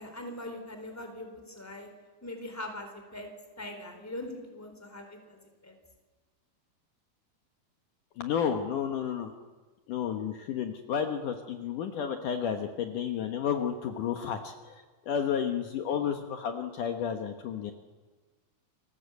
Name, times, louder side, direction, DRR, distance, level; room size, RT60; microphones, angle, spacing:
voice 1, 0.0-1.9 2.2-3.3 3.6-5.7, left 1 dB, 5° left, 5 dB, 3.4 m, -41 dB
voice 2, 8.2-9.3 9.9-14.7 15.1-17.7, left 8 dB, 65° left, 5 dB, 2.6 m, -31 dB
29.0 x 21.0 x 8.3 m, 1.3 s
omnidirectional pair, 4.3 m